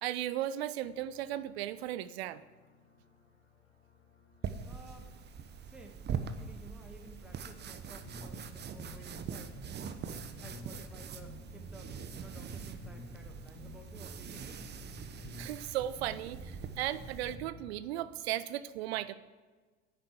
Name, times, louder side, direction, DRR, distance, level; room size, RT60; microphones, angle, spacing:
voice 1, 0.0-2.4 15.4-19.1, right 13 dB, 65° right, 15 dB, 0.7 m, -36 dB
sound 1, 0.8-18.4, left 3 dB, 85° left, 3.4 m, -64 dB
sound 2, 4.4-17.4, right 7 dB, 30° right, 1.0 m, -43 dB
voice 2, 4.6-5.1 5.6-14.6, right 1 dB, 5° right, 3 dB, 1.9 m, -55 dB
sound 3, 8.0-17.6, equal, 35° left, 3.5 m, -49 dB
10.5 x 7.9 x 8.2 m, 1.4 s
figure-of-eight pair, 70°, 34 cm